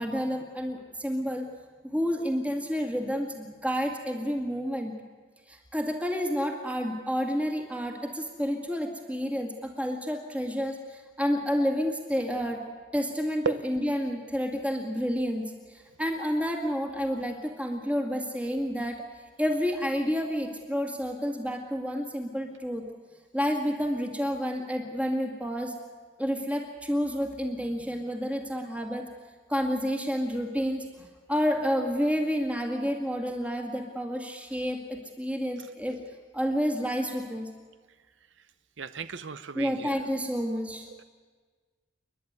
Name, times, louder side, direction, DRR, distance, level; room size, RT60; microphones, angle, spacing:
voice 1, 0.0-1.5 1.8-4.9 5.5-12.6 12.9-15.4 15.7-19.0 19.4-22.8 23.3-25.7 26.2-29.1 29.5-36.0 36.3-37.5 39.5-40.9, equal, 5° right, 3 dB, 2.1 m, -30 dB
voice 2, 38.8-39.9, right 5 dB, 75° right, 13 dB, 0.7 m, -33 dB
29.0 x 11.0 x 9.5 m, 1.5 s
head